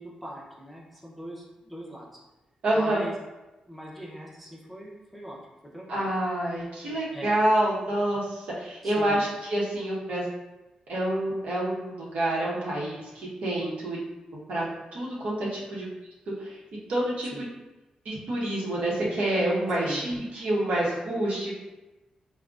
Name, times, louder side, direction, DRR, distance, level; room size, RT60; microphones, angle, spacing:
voice 1, 0.0-2.2 2.7-3.1 3.7-5.4 5.7-6.1 7.1-7.3 8.8-9.2 17.3-17.5 19.8-20.0, equal, ahead, -4 dB, 0.6 m, -41 dB
voice 2, 2.6-3.0 5.9-10.3 10.9-14.0 14.5-14.7 14.9-15.9 16.4-16.6 16.9-17.4 18.0-21.6, right 1 dB, 75° right, -6 dB, 0.8 m, -27 dB
3.7 x 2.1 x 2.3 m, 1.1 s
cardioid pair, 90°, 2 cm